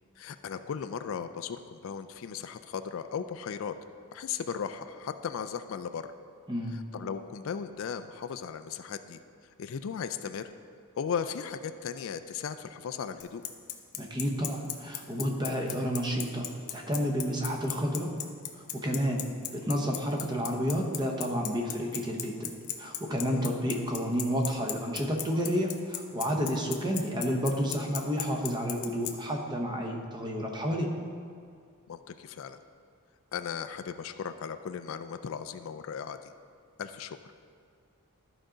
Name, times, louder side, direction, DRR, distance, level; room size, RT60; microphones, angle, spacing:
voice 1, 0.2-3.7 4.1-6.1 6.7-9.2 9.6-10.4 11.0-13.4 23.3-23.5 31.9-32.6 33.3-36.3 36.8-37.2, left 7 dB, 60° left, 9 dB, 0.3 m, -36 dB
voice 2, 6.5-6.8 14.0-18.1 18.7-19.2 19.5-22.5 22.8-30.9, equal, 20° right, 1 dB, 0.8 m, -30 dB
Bicycle, 13.2-29.1, left 13 dB, 85° left, 0.7 m, -35 dB
13.0 x 5.0 x 3.8 m, 2.2 s
head